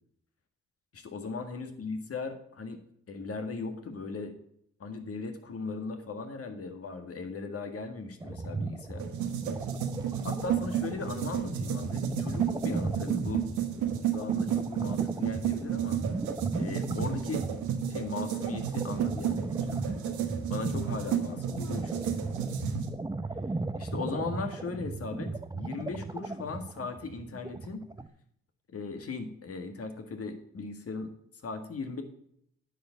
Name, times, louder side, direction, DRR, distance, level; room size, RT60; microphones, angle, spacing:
voice 1, 0.9-2.8 3.1-4.4 4.8-9.1 10.2-13.5 14.1-16.0 16.5-17.5 17.9-22.3 23.8-27.8 28.7-31.1 31.4-32.0, left 4 dB, 50° left, 6 dB, 1.9 m, -38 dB
sound 1, 8.2-28.1, right 3 dB, 15° right, 0.7 m, -37 dB
sound 2, 9.0-22.9, right 9 dB, 85° right, 1.3 m, -32 dB
10.0 x 5.2 x 6.9 m, 0.69 s
supercardioid pair, 50°, 29 cm